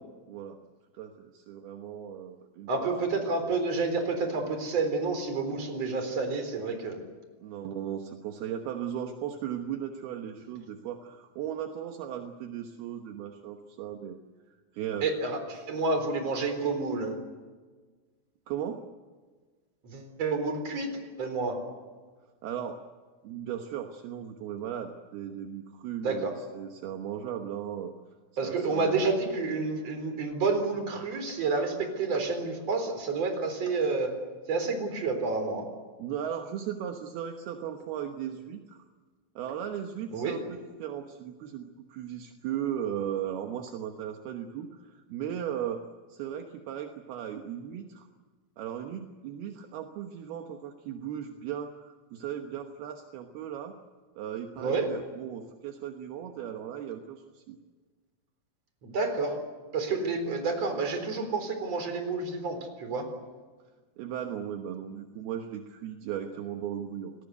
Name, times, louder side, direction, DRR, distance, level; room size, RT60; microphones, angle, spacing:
voice 1, 0.3-0.6 0.9-2.9 7.4-14.2 14.7-15.1 18.5-18.9 22.4-22.8 23.2-27.9 28.4-29.0 36.0-38.8 39.4-45.8 46.1-48.1 48.6-53.7 54.2-57.6 64.0-67.2, right 9 dB, 70° right, 4 dB, 2.6 m, -37 dB
voice 2, 2.7-7.0 15.0-17.2 19.8-20.9 21.2-21.6 26.0-26.3 28.4-34.1 34.5-35.7 40.1-40.4 54.6-54.9 58.8-59.4 59.7-63.1, right 3 dB, 35° right, 6 dB, 4.5 m, -29 dB
29.5 x 19.5 x 8.1 m, 1.4 s
omnidirectional pair, 5.9 m